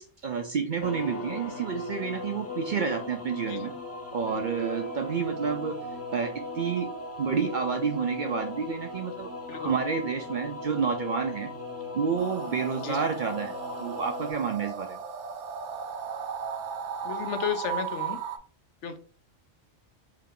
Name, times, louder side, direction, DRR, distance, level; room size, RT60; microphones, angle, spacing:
voice 1, 0.0-3.7 4.1-5.8 6.1-6.9 7.2-11.5 11.9-15.0, right 6 dB, 60° right, 4 dB, 0.5 m, -29 dB
sound 1, 0.8-14.3, left 2 dB, 20° left, 0.4 m, -38 dB
sound 2, 12.2-18.4, right 7 dB, 75° right, 0.9 m, -36 dB
voice 2, 17.0-18.2 18.8-19.0, left 8 dB, 75° left, 8 dB, 0.9 m, -33 dB
3.6 x 2.8 x 3.6 m, 0.41 s
omnidirectional pair, 1.2 m